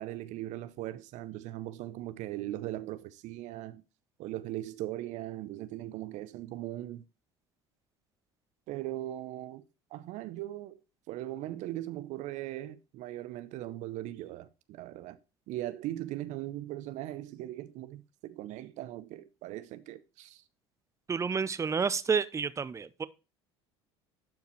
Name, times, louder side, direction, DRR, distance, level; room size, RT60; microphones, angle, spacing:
voice 1, 0.0-3.8 4.2-7.0 8.7-9.6 9.9-10.8 11.1-15.2 15.5-20.4, right 14 dB, 60° right, 0.6 m, -39 dB
voice 2, 21.1-23.0, right 5 dB, 20° right, 0.7 m, -30 dB
11.5 x 4.7 x 3.1 m
hypercardioid pair, 70°, 14 cm